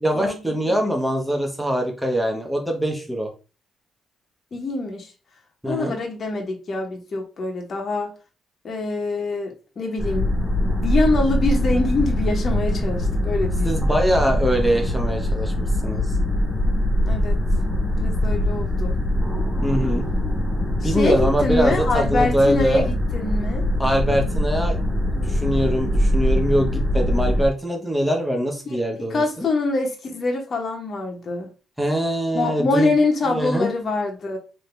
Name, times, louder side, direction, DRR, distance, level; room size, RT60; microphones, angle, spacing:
voice 1, 0.0-3.3 5.6-5.9 13.6-16.1 19.6-20.1 20.8-22.9 23.8-24.8 25.1-29.5 31.8-32.9 33.3-33.7, equal, ahead, 1 dB, 1.2 m, -23 dB
voice 2, 4.5-5.1 5.7-8.1 8.6-10.4 10.8-13.7 17.1-17.4 18.0-19.0 20.8-23.7 28.7-28.8 29.1-31.5 32.3-34.4, left 2 dB, 45° left, 1 dB, 1.1 m, -24 dB
sound 1, 10.0-27.5, left 1 dB, 20° left, 1.3 m, -22 dB
3.7 x 2.9 x 3.3 m, 0.33 s
cardioid pair, 90°, 0 cm